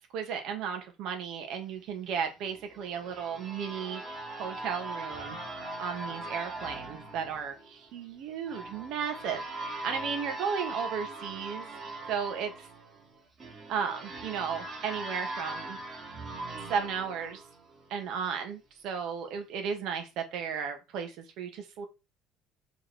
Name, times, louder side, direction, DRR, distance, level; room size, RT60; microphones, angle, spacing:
voice 1, 0.1-4.0 4.4-5.4 5.8-11.7 12.1-12.7 13.7-15.8 16.7-17.4 17.9-21.8, right 7 dB, 60° right, 5 dB, 2.6 m, -34 dB
sound 1, 2.4-18.1, right 2 dB, 25° right, 2.9 m, -41 dB
6.2 x 5.3 x 6.6 m, 0.27 s
cardioid pair, 160°, 0 cm